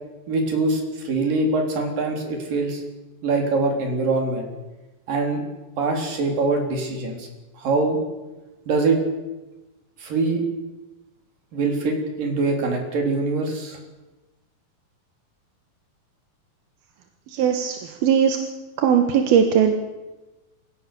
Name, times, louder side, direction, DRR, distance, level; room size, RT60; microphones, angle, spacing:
voice 1, 0.3-2.8 3.2-4.5 5.1-5.5 5.8-7.3 7.6-8.0 8.7-9.0 10.0-10.4 11.5-13.8, right 3 dB, 65° right, 2 dB, 5.5 m, -23 dB
voice 2, 17.3-18.4 18.8-19.8, right 8 dB, 85° right, 5 dB, 3.4 m, -19 dB
28.5 x 17.0 x 7.0 m, 1.1 s
omnidirectional pair, 4.2 m